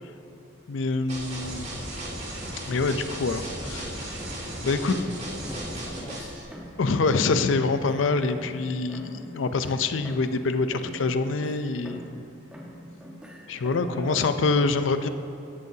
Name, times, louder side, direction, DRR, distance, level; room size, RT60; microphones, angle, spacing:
voice 1, 0.7-1.7 2.7-4.2 4.6-5.0 6.8-12.0 13.5-15.1, left 3 dB, 80° left, 10 dB, 0.5 m, -25 dB
sound 1, 1.1-6.4, right 1 dB, 35° right, 2.2 m, -36 dB
sound 2, 3.6-5.1 5.4-6.9 7.2-10.5 10.7-12.2 12.5-14.0, equal, 5° right, 1.1 m, -44 dB
voice 2, 4.7-6.3 13.8-14.3, equal, 25° left, -5 dB, 2.1 m, -39 dB
15.0 x 10.5 x 2.8 m, 2.7 s
head